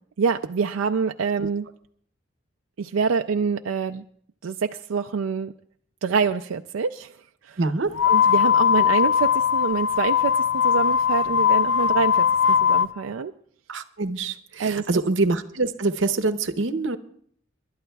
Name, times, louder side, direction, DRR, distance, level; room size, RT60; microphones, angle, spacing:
voice 1, 0.2-1.7 2.8-4.0 4.4-5.5 6.0-7.1 7.4-7.6 8.0-10.3 10.6-13.3 14.6-14.9, right 5 dB, 90° right, 6 dB, 0.4 m, -26 dB
voice 2, 7.6-7.9 13.7-17.0, right 3 dB, 65° right, 9 dB, 0.8 m, -25 dB
sound 1, 7.9-12.9, left 8 dB, 75° left, 0.6 m, -20 dB
28.0 x 12.0 x 2.3 m, 0.62 s
head